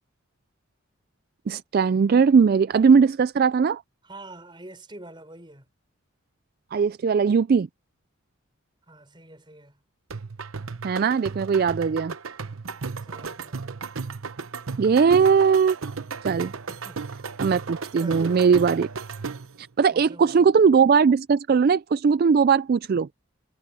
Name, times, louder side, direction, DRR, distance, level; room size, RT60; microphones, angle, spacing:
voice 1, 1.5-3.8 6.7-7.7 10.8-12.1 14.8-15.8 16.2-16.5 17.4-18.9 19.6-23.1, right 6 dB, 45° right, 0.3 m, -19 dB
voice 2, 4.0-5.7 8.9-9.8 13.0-13.8 16.7-17.0 18.0-18.5 19.9-20.5, right 1 dB, 25° right, 6.3 m, -45 dB
sound 1, 10.1-19.6, right 5 dB, 85° right, 0.9 m, -35 dB
head